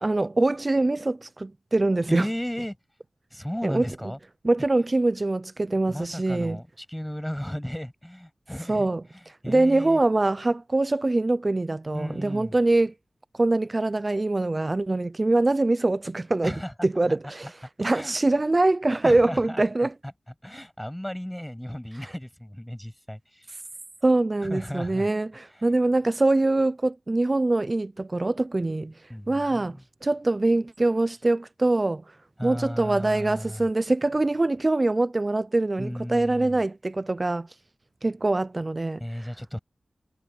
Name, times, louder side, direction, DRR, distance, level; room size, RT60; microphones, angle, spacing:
voice 1, 0.0-2.3 3.6-3.9 4.4-6.6 8.7-9.0 9.5-12.9 13.3-16.5 16.8-17.5 17.8-19.9 24.0-28.9 29.3-32.0 32.4-37.5 38.0-39.0, right 2 dB, 35° right, 0.5 m, -23 dB
voice 2, 2.1-2.8 3.3-4.2 5.9-10.0 11.9-12.6 16.4-16.7 17.1-17.2 17.4-17.5 17.8-18.2 19.0-19.6 20.0-20.1 20.4-23.5 24.4-25.1 25.4-25.7 29.1-29.8 32.4-33.7 35.8-36.6 39.0-39.6, equal, 5° left, 7.5 m, -35 dB
wide cardioid pair, 75°, 0 cm